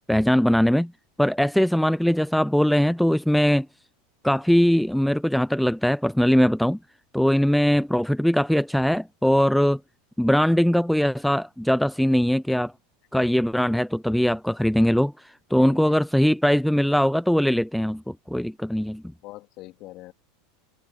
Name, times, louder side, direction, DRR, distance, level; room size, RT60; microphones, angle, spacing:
voice 1, 0.1-0.9 1.2-3.7 4.2-6.8 7.1-9.8 10.2-12.7 13.1-19.0, equal, ahead, 0.4 m, -21 dB
voice 2, 15.6-15.9 19.2-20.1, left 18 dB, 50° left, 2.6 m, -43 dB
supercardioid pair, 135°, 0 cm